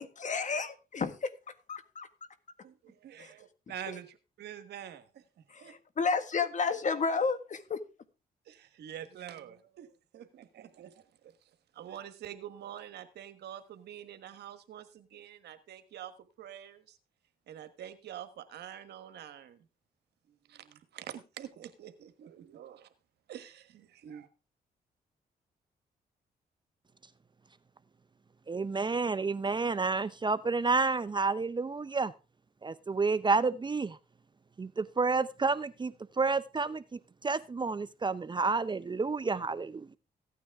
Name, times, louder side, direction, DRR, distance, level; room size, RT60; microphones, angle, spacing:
voice 1, 0.0-2.1 3.2-3.3 3.9-4.0 5.5-7.8, left 4 dB, 50° left, 1.6 m, -32 dB
voice 2, 2.6-5.2 5.6-5.7 8.5-9.9 10.1-10.9 11.7-16.1 16.4-17.0 17.5-19.6 20.5-22.9 23.3-24.3, right 10 dB, 80° right, 1.3 m, -46 dB
voice 3, 28.5-32.1 32.6-33.9 34.6-36.8 37.2-39.8, right 4 dB, 25° right, 0.6 m, -30 dB
15.5 x 9.4 x 3.5 m
cardioid pair, 70°, 17 cm